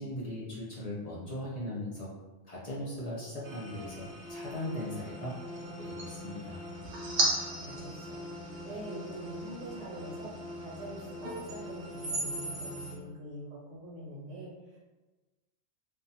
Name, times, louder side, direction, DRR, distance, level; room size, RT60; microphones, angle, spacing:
voice 1, 0.0-2.1 2.5-5.4 5.8-6.7, left 1 dB, 60° left, -6 dB, 0.4 m, -39 dB
sound 1, 3.4-12.9, right 1 dB, 65° right, 0.8 m, -37 dB
voice 2, 7.0-14.8, right 1 dB, 90° right, -4 dB, 1.1 m, -45 dB
2.5 x 2.2 x 2.7 m, 1.2 s
omnidirectional pair, 1.2 m